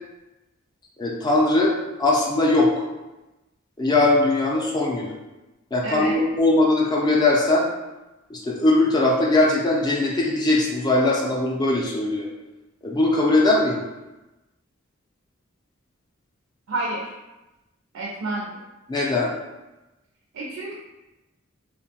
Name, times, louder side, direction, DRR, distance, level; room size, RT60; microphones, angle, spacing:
voice 1, 1.0-2.8 3.8-5.2 5.7-7.7 8.3-12.3 12.8-13.9 18.9-19.3, left 2 dB, 20° left, -3 dB, 0.3 m, -20 dB
voice 2, 5.8-6.2 16.7-17.1 17.9-18.5 20.3-20.7, right 2 dB, 85° right, -3 dB, 0.4 m, -29 dB
2.9 x 2.1 x 2.7 m, 1.0 s
head